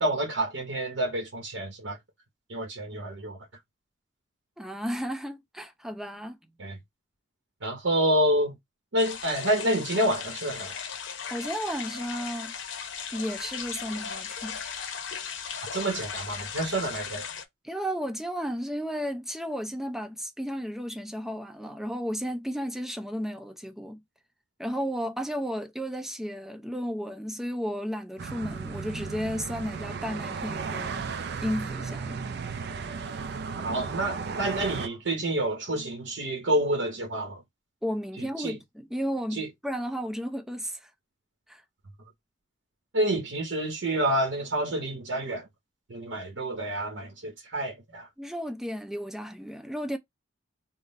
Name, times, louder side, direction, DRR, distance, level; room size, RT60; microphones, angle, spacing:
voice 1, 0.0-2.0 2.5-3.4 6.6-6.8 7.6-8.5 8.9-10.8 15.7-17.3 33.6-37.4 38.2-38.6 39.4-39.5 42.9-45.5 45.9-48.1, right 1 dB, 85° right, 0.9 m, -28 dB
voice 2, 4.6-6.4 11.3-12.5 13.1-14.9 17.6-24.0 24.6-31.0 31.4-32.2 37.8-40.9 41.5-41.6 48.2-50.0, equal, ahead, 0.5 m, -33 dB
sound 1, 9.0-17.4, left 7 dB, 80° left, 0.8 m, -37 dB
sound 2, 28.2-34.9, right 5 dB, 55° right, 0.4 m, -35 dB
3.7 x 2.1 x 3.9 m
head